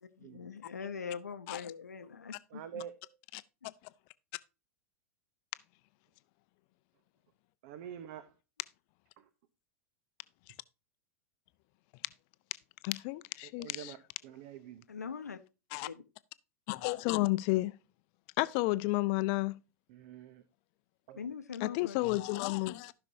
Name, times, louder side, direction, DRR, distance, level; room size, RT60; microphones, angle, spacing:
voice 1, 0.0-2.8 14.9-15.4 15.8-15.9 21.2-22.0, left 6 dB, 85° left, 0.7 m, -42 dB
voice 2, 2.5-2.9 7.6-8.3 13.6-14.0 14.2-14.8 19.9-20.4 21.1-21.2, right 9 dB, 55° right, 0.8 m, -46 dB
voice 3, 12.8-14.0 15.7-15.9 16.7-17.7 18.4-19.6 21.6-22.9, left 21 dB, 45° left, 0.5 m, -31 dB
15.0 x 5.8 x 2.7 m
figure-of-eight pair, 95°, 9 cm